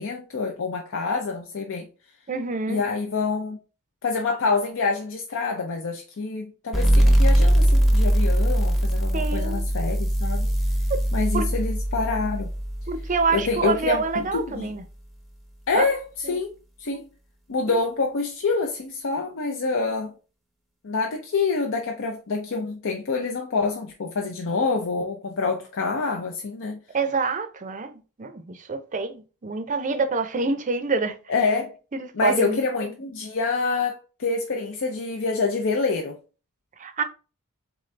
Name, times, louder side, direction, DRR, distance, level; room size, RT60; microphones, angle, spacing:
voice 1, 0.0-1.9 2.7-3.6 4.0-10.5 11.1-12.5 13.3-14.7 15.7-16.0 16.3-16.5 16.8-17.1 17.5-20.1 20.8-26.8 31.3-31.7 32.1-36.2, left 4 dB, 60° left, 0.6 m, -26 dB
voice 2, 2.3-2.8 9.1-9.6 11.3-11.5 12.9-14.8 15.7-15.9 16.2-16.4 17.7-17.8 26.9-31.2 31.9-32.6 36.8-37.0, right 4 dB, 35° right, 0.5 m, -26 dB
sound 1, 6.7-14.0, equal, ahead, 0.7 m, -21 dB
3.9 x 3.6 x 3.2 m
head